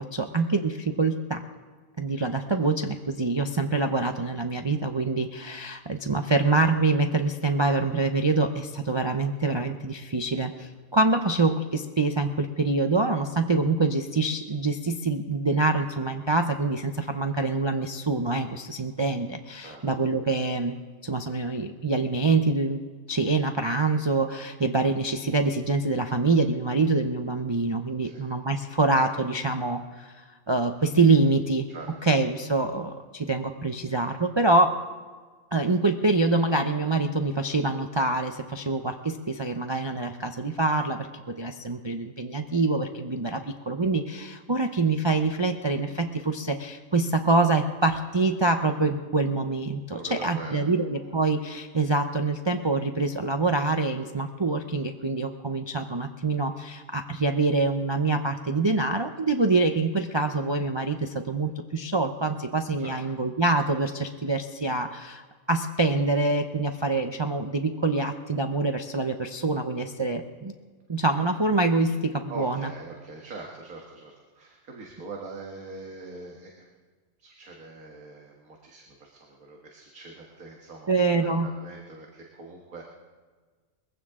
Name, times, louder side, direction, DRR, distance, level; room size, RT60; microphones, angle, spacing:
voice 1, 0.0-1.4 2.0-20.8 21.0-22.8 23.1-31.7 32.0-34.8 35.5-65.2 65.5-70.5 70.9-72.7 80.9-81.5, right 3 dB, 35° right, 5 dB, 0.4 m, -25 dB
voice 2, 49.9-50.7 51.0-51.1 62.8-63.0 72.3-76.7 77.2-82.9, right 3 dB, 85° right, 0 dB, 2.0 m, -43 dB
21.5 x 15.5 x 3.7 m, 1.4 s
omnidirectional pair, 1.5 m